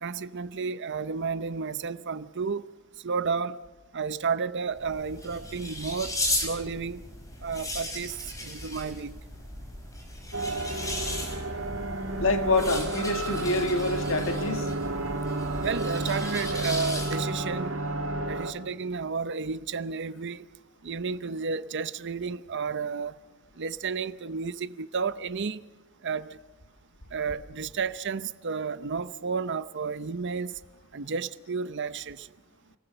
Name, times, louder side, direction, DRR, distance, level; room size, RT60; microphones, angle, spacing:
voice 1, 0.0-2.7 3.0-3.6 3.9-6.2 6.4-7.0 7.4-8.2 8.4-9.2 15.6-17.7 18.3-20.5 20.8-23.1 23.6-25.6 26.0-26.4 27.1-30.5 30.9-32.3, right 5 dB, 60° right, 0.7 m, -32 dB
sound 1, 4.7-17.4, left 1 dB, 15° left, 5.3 m, -36 dB
sound 2, 10.3-18.5, right 2 dB, 75° right, 2.4 m, -31 dB
voice 2, 12.2-14.7, left 2 dB, 70° left, 1.9 m, -26 dB
29.5 x 19.5 x 6.8 m
head